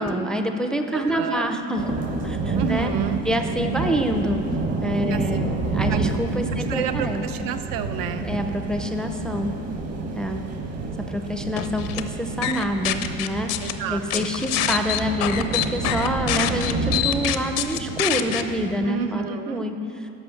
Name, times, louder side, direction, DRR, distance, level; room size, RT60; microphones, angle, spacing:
voice 1, 0.0-1.9 2.2-2.9 3.3-4.4 4.8-7.5 8.2-9.5 10.1-10.4 11.1-13.5 13.9-19.8, equal, ahead, 5 dB, 0.4 m, -26 dB
voice 2, 0.9-1.5 2.5-3.2 5.1-5.2 5.9-6.0 6.5-8.3 13.6-14.3 18.8-19.7, right 8 dB, 80° right, 8 dB, 0.7 m, -30 dB
sound 1, 1.8-18.7, right 3 dB, 50° right, 1.3 m, -29 dB
sound 2, 11.6-12.0 12.4-13.7 14.1-18.4, left 13 dB, 75° left, 0.6 m, -25 dB
11.0 x 5.7 x 6.9 m, 2.8 s
cardioid pair, 130°, 33 cm